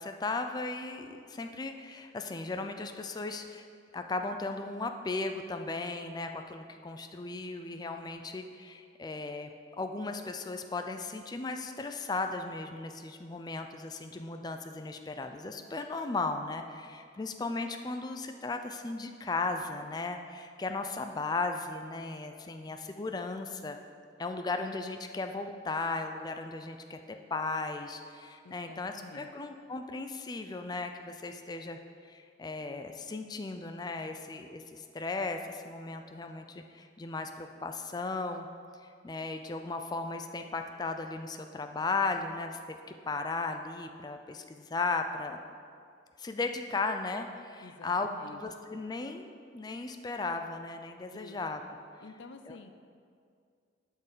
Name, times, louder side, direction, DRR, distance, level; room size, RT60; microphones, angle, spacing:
voice 1, 0.0-3.7 3.9-9.5 9.8-23.8 24.2-27.0 27.3-38.5 38.8-42.6 43.1-45.4 46.2-48.1 48.4-51.6 52.5-52.6, left 3 dB, 25° left, 6 dB, 0.4 m, -36 dB
voice 2, 28.4-29.3 47.6-48.4 51.1-51.4 52.0-52.7, left 3 dB, 85° left, 8 dB, 0.5 m, -50 dB
8.2 x 4.6 x 7.2 m, 2.2 s
head